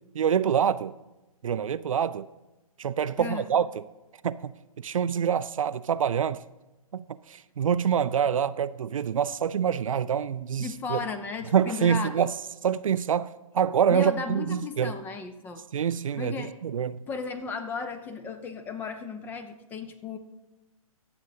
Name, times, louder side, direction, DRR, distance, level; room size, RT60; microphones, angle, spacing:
voice 1, 0.1-0.9 1.4-2.3 2.8-3.8 4.2-4.5 4.8-6.4 6.9-11.0 11.5-12.3 12.6-14.9 15.7-17.0, right 8 dB, 65° right, 0.4 m, -26 dB
voice 2, 10.6-12.3 13.9-15.6 16.2-16.6 17.1-20.2, left 5 dB, 10° left, 0.5 m, -35 dB
22.0 x 7.8 x 2.7 m
figure-of-eight pair, 130°, 19 cm